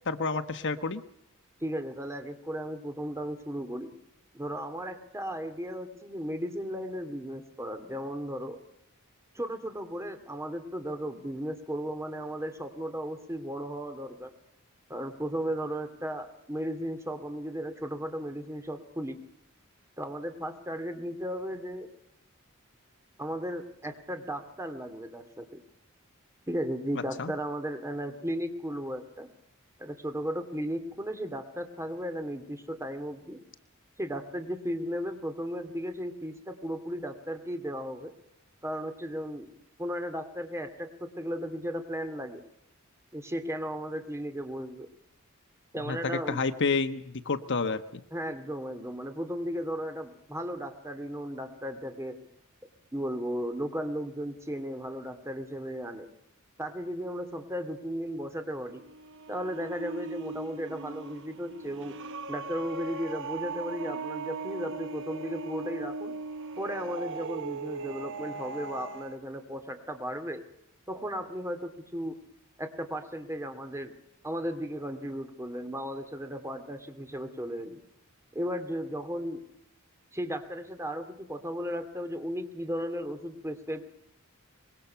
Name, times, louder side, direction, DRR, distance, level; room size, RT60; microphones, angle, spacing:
voice 1, 0.1-1.0 27.2-27.3 45.9-48.0, left 4 dB, 60° left, 10 dB, 1.1 m, -29 dB
voice 2, 1.6-3.9 4.3-8.6 9.3-14.3 14.9-19.2 20.0-21.9 23.2-25.6 26.5-29.3 29.8-33.4 34.0-38.1 38.6-39.5 39.8-42.4 43.1-44.9 45.7-46.5 48.1-52.2 52.9-56.1 56.6-58.9 59.3-62.0 62.3-66.1 66.6-70.4 70.9-72.2 72.6-74.0 74.2-77.8 78.3-79.4 80.1-83.8, equal, 15° right, 7 dB, 2.5 m, -35 dB
sound 1, 58.6-69.2, right 3 dB, 60° right, 1.1 m, -39 dB
24.5 x 22.0 x 5.8 m, 0.78 s
head